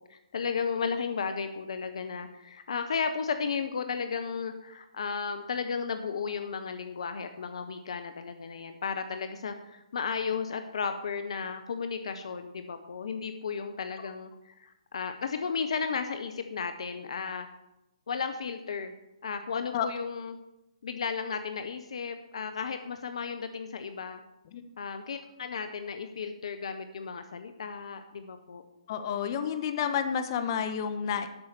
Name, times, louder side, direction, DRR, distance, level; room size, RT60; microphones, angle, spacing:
voice 1, 0.1-17.5 18.1-18.9 19.2-20.4 20.8-24.2 24.8-28.6, left 5 dB, 65° left, 8 dB, 0.9 m, -34 dB
voice 2, 28.9-31.3, left 8 dB, 40° left, 9 dB, 1.1 m, -30 dB
11.5 x 5.6 x 6.7 m, 0.93 s
figure-of-eight pair, 135°, 3 cm